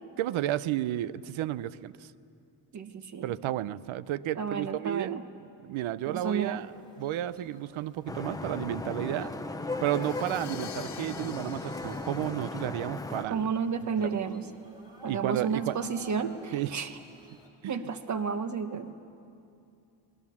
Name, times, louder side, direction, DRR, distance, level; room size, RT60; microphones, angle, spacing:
voice 1, 0.2-2.1 3.2-6.7 7.0-9.3 9.8-13.5 14.0-14.1 15.0-15.8 16.5-16.7 17.6-17.8, right 13 dB, 85° right, 17 dB, 0.7 m, -32 dB
voice 2, 2.7-3.4 4.4-5.2 6.0-6.6 13.3-14.5 15.0-16.9 17.7-19.0, right 6 dB, 40° right, 9 dB, 1.1 m, -32 dB
sound 1, 6.0-17.5, right 1 dB, 10° right, 2.9 m, -53 dB
Vehicle horn car horn honking / Traffic noise roadway noise, 8.1-13.2, left 2 dB, 10° left, 0.5 m, -37 dB
Crash cymbal, 9.7-13.5, left 9 dB, 55° left, 1.4 m, -47 dB
25.5 x 19.5 x 7.3 m, 2.6 s
cardioid pair, 170°, 46 cm